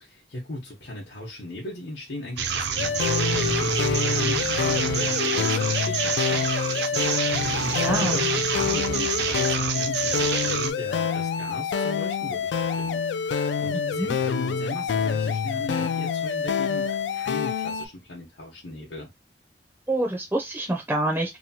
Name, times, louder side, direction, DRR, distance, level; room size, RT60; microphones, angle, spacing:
voice 1, 0.0-19.1, left 1 dB, 70° left, 0.9 m, -38 dB
sound 1, 2.4-10.7, right 6 dB, 65° right, 0.5 m, -27 dB
sound 2, 2.8-17.9, left 6 dB, 85° left, 0.3 m, -27 dB
voice 2, 7.8-8.2 13.7-14.1 19.9-21.4, right 1 dB, 10° right, 0.4 m, -26 dB
2.9 x 2.2 x 2.7 m
head